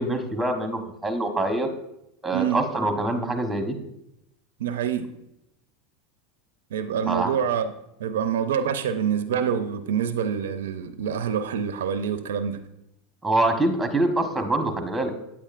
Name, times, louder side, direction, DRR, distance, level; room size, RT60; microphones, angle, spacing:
voice 1, 0.0-1.7 2.2-3.8 7.1-7.3 13.2-15.1, right 2 dB, 5° right, 6 dB, 1.0 m, -25 dB
voice 2, 4.6-5.1 6.7-7.7 8.0-12.6, right 8 dB, 80° right, 11 dB, 0.5 m, -26 dB
8.6 x 8.4 x 2.5 m, 0.83 s
hypercardioid pair, 100°, 0 cm